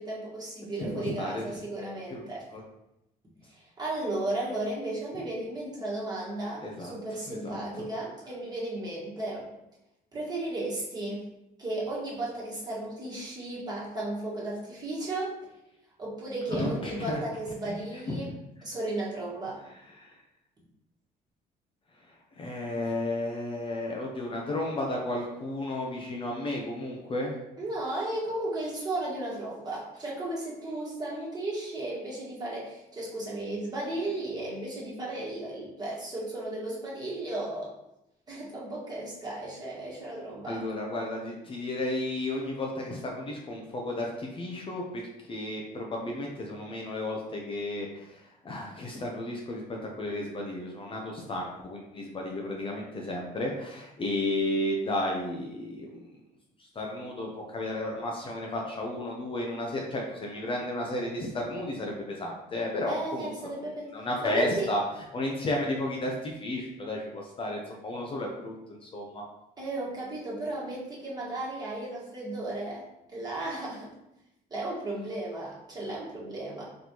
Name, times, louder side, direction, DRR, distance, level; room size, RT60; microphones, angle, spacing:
voice 1, 0.0-2.4 3.5-9.5 10.1-11.3 11.6-15.3 16.0-18.3 18.6-19.6 27.6-37.7 38.3-40.6 62.9-63.9 64.2-64.7 69.6-73.9 74.5-76.6, right 2 dB, 25° right, -6 dB, 1.5 m, -35 dB
voice 2, 0.8-1.5 2.1-2.2 2.5-2.6 6.6-6.9 7.3-7.9 16.6-17.2 17.6-17.7 18.1-18.4 20.0-20.1 22.4-27.4 40.5-45.0 45.3-56.1 56.6-63.6 63.9-64.8 65.1-69.2, left 1 dB, 30° left, -1 dB, 0.6 m, -33 dB
4.2 x 3.2 x 2.9 m, 0.88 s
cardioid pair, 110°, 17 cm